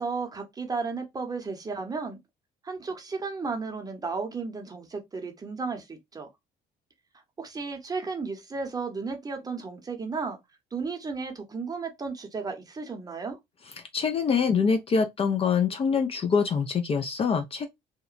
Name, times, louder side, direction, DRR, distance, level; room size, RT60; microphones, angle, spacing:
voice 1, 0.0-2.2 2.6-6.3 7.4-10.4 10.7-13.4, right 4 dB, 20° right, 0.7 m, -34 dB
voice 2, 13.8-17.7, left 5 dB, 35° left, 0.4 m, -25 dB
2.9 x 2.1 x 2.4 m
cardioid pair, 110°, 17 cm